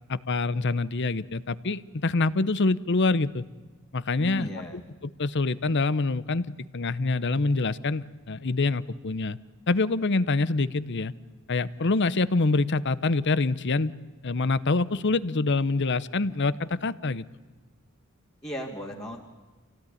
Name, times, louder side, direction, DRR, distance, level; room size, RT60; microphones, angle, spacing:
voice 1, 0.1-3.4 3.9-9.4 9.7-11.1 11.5-13.9 14.2-17.2, left 3 dB, 50° left, 17 dB, 0.8 m, -26 dB
voice 2, 4.2-4.8 18.4-19.2, equal, 15° left, -3 dB, 2.4 m, -36 dB
27.0 x 17.5 x 10.0 m, 1.3 s
head